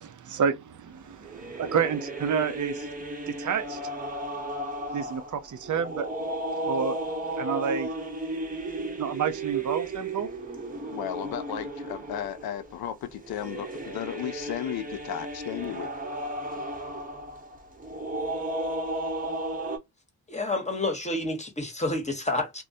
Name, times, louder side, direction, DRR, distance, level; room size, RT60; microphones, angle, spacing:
voice 1, 0.0-2.9 3.3-3.8 4.9-6.1 6.6-7.0 7.4-7.9 9.0-10.3, right 7 dB, 55° right, 0.6 m, -29 dB
sound 1, 1.1-19.8, right 1 dB, 25° right, 0.8 m, -34 dB
voice 2, 10.9-15.9, left 10 dB, 80° left, 0.5 m, -34 dB
voice 3, 20.3-22.6, left 2 dB, 20° left, 1.0 m, -29 dB
2.2 x 2.1 x 2.7 m
cardioid pair, 55°, 36 cm